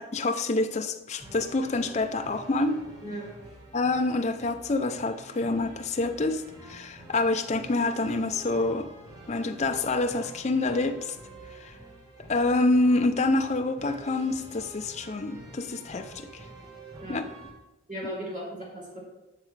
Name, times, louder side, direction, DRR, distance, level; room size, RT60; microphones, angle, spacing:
voice 1, 0.0-2.8 3.7-8.9 9.3-11.2 11.5-11.8 12.3-16.4 17.1-17.3, left 2 dB, 35° left, 7 dB, 0.5 m, -27 dB
sound 1, 1.2-17.5, right 1 dB, 20° right, 1.5 m, -48 dB
voice 2, 17.9-19.0, equal, 40° right, -6 dB, 3.4 m, -37 dB
11.5 x 6.7 x 3.3 m, 1.0 s
head